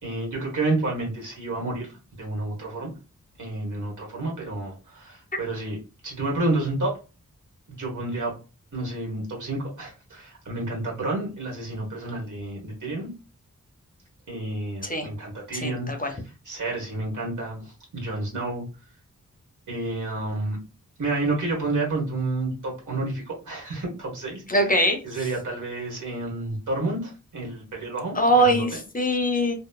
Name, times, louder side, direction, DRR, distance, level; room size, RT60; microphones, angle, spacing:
voice 1, 0.0-2.9 3.4-5.8 6.0-7.0 7.7-8.4 8.7-13.1 14.3-15.9 16.4-18.6 19.7-20.6 21.0-24.4 25.0-28.8, right 2 dB, 70° right, -1 dB, 1.3 m, -30 dB
voice 2, 15.5-16.1 24.5-25.0 28.1-29.5, right 1 dB, 25° left, 5 dB, 0.6 m, -22 dB
2.9 x 2.0 x 2.3 m, 0.31 s
wide cardioid pair, 70°, 31 cm